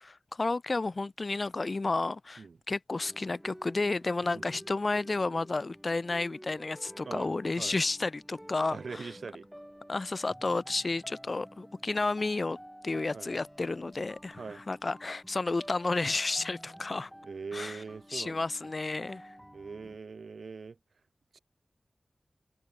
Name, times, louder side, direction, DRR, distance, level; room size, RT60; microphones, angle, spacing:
voice 1, 0.0-9.1 9.9-12.6 12.8-17.1 17.5-17.8 18.1-19.3, left 3 dB, 45° left, 0.5 m, -32 dB
sound 1, 3.0-20.0, equal, 5° right, 0.8 m, -51 dB
voice 2, 8.7-9.5 13.1-13.3 14.4-14.6 17.2-18.4 19.5-20.8 21.3-21.4, right 4 dB, 85° right, 0.8 m, -41 dB
wide cardioid pair, 90°, 0 cm